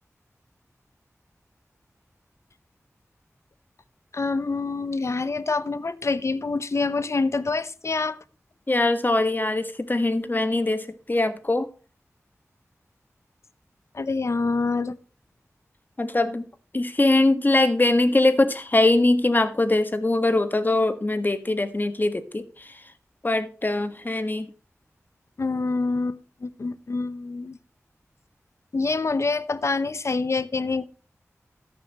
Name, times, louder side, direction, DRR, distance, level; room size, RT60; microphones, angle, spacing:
voice 1, 4.1-8.2 13.9-15.0 25.4-27.6 28.7-30.8, left 3 dB, 60° left, 0.8 m, -26 dB
voice 2, 8.7-11.7 16.0-16.4 16.7-22.7 23.2-24.5, left 2 dB, 35° left, 1.6 m, -22 dB
14.0 x 10.5 x 3.0 m
wide cardioid pair, 65°, 5 cm